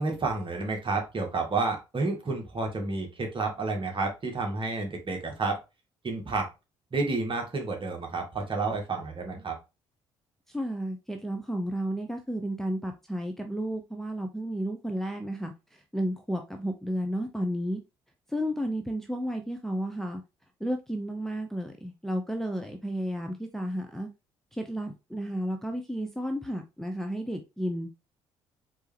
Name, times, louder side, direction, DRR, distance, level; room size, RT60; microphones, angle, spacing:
voice 1, 0.0-5.6 6.0-6.5 6.9-9.6, right 3 dB, 35° right, 2 dB, 1.9 m, -30 dB
voice 2, 10.5-15.5 15.9-17.8 18.3-20.2 20.6-24.1 24.5-27.9, equal, ahead, 3 dB, 0.7 m, -32 dB
4.5 x 3.4 x 3.3 m, 0.27 s
figure-of-eight pair, 50°, 15 cm